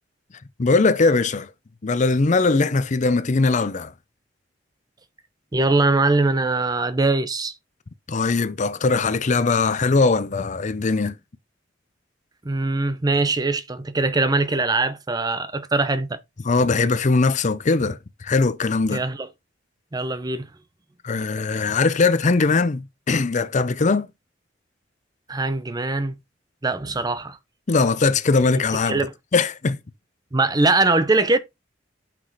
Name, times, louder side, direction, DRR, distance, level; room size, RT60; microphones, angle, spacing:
voice 1, 0.6-1.5 1.8-3.9 8.1-11.2 16.4-19.0 21.0-24.1 27.7-29.0 29.3-29.8, left 3 dB, 40° left, 0.5 m, -20 dB
voice 2, 5.5-7.5 12.4-16.2 18.9-19.3 19.9-20.5 25.3-26.1 26.6-27.4 28.9-29.1 30.3-31.4, right 3 dB, 20° right, 0.6 m, -22 dB
6.0 x 4.8 x 4.0 m
head